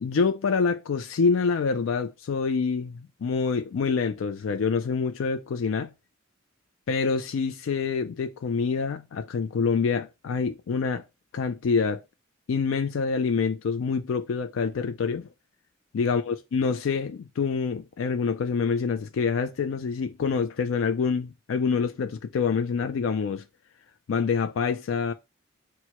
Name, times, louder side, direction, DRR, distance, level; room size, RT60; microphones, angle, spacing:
voice 1, 0.0-5.9 6.9-11.0 11.3-12.0 12.5-15.3 15.9-23.4 24.1-25.1, left 5 dB, 75° left, 0.4 m, -26 dB
4.5 x 2.0 x 4.2 m
head